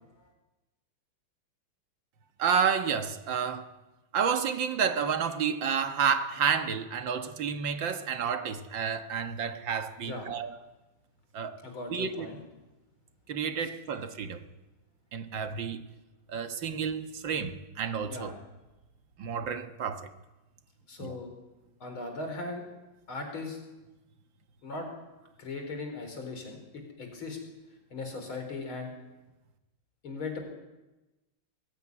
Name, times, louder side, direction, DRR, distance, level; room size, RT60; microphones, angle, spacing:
voice 1, 2.4-3.7 4.1-10.6 11.3-11.6 11.9-12.3 13.3-14.5 15.1-15.8 16.3-18.3 19.2-20.1 21.0-21.2, right 7 dB, 65° right, 2.1 m, -30 dB
voice 2, 11.6-12.4 18.1-18.4 20.9-21.3 21.8-22.6 23.1-23.6 24.6-24.9 25.4-27.4 27.9-28.9 30.0-30.4, left 3 dB, 75° left, 5.1 m, -38 dB
22.5 x 16.5 x 9.7 m
omnidirectional pair, 2.3 m